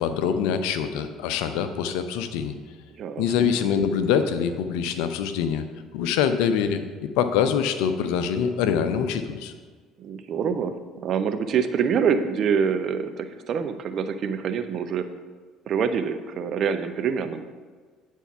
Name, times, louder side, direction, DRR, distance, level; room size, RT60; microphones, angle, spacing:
voice 1, 0.0-2.5 3.2-5.7 5.9-6.8 7.2-9.5, left 7 dB, 70° left, 9 dB, 0.6 m, -24 dB
voice 2, 3.0-3.5 10.0-10.8 11.0-15.1 15.7-17.4, right 6 dB, 50° right, 9 dB, 0.6 m, -25 dB
9.1 x 4.5 x 5.8 m, 1.5 s
hypercardioid pair, 55°, 0 cm